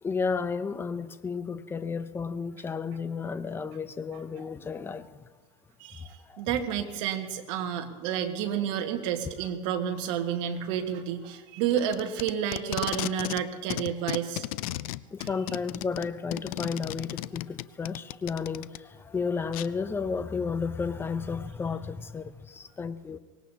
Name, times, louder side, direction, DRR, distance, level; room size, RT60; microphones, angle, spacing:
voice 1, 0.0-5.3 6.0-6.4 15.1-23.2, left 5 dB, 10° left, 0.6 m, -33 dB
voice 2, 5.8-14.4 15.2-15.3, right 9 dB, 65° right, 1.6 m, -30 dB
Packing tape duct tape, 11.7-13.4 13.7-18.8 19.5-19.7, left 17 dB, 80° left, 0.5 m, -35 dB
24.0 x 20.0 x 2.8 m
supercardioid pair, 145°, 18 cm